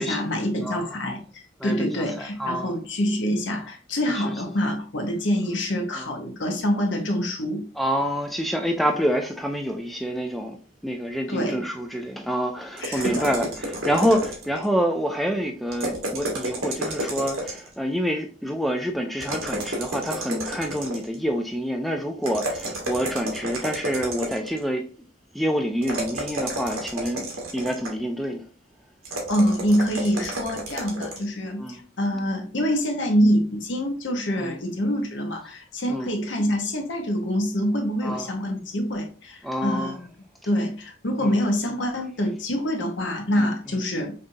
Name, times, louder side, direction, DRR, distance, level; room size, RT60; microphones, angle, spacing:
voice 1, 0.0-7.6 11.3-11.6 12.8-13.3 29.3-40.1 40.4-44.1, equal, 60° left, 0.9 m, -25 dB
voice 2, 1.6-2.8 4.1-4.3 5.9-6.1 7.8-10.6 10.8-24.8 25.3-27.2 27.5-28.4 31.6-31.8 34.4-34.6 35.9-36.1 38.0-38.3 39.4-40.0 41.2-41.4 43.3-43.5, equal, ahead, 0.3 m, -27 dB
sound 1, 12.8-14.7 15.7-17.7 19.2-21.2 22.2-24.6 25.8-28.0 29.0-31.3, right 1 dB, 85° right, 1.3 m, -31 dB
5.5 x 2.5 x 2.6 m
head